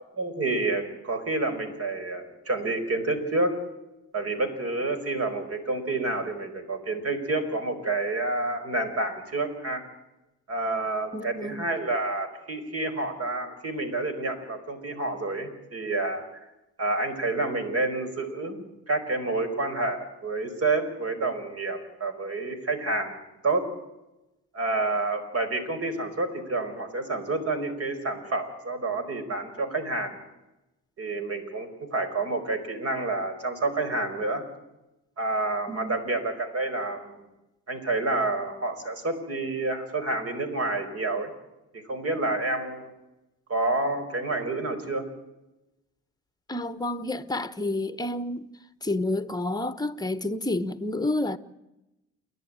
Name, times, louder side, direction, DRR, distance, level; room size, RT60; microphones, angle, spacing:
voice 1, 0.2-3.6 4.1-9.8 10.5-16.3 16.8-23.2 23.4-23.6 24.5-30.2 31.0-34.4 35.2-37.3 37.7-41.3 41.7-42.9 43.5-45.1, right 2 dB, 50° right, 5.0 m, -29 dB
voice 2, 11.1-11.7 35.7-36.0 46.5-48.5 48.8-51.4, left 2 dB, 15° left, 1.1 m, -29 dB
29.0 x 11.5 x 8.9 m
cardioid pair, 90°, 30 cm